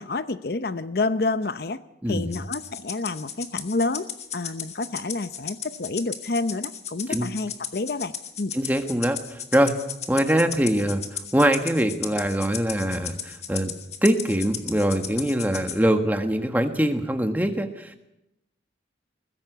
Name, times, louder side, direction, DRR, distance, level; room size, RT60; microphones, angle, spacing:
voice 1, 0.0-1.8 2.1-8.1 8.4-8.5, left 3 dB, 55° left, 13 dB, 0.7 m, -28 dB
voice 2, 2.0-2.4 7.1-7.3 8.5-9.7 10.1-11.0 11.3-13.7 14.0-18.1, right 1 dB, 10° right, 6 dB, 1.5 m, -23 dB
Rattle (instrument), 2.3-15.8, left 8 dB, 35° left, 1.6 m, -35 dB
20.5 x 16.0 x 8.1 m, 0.87 s
head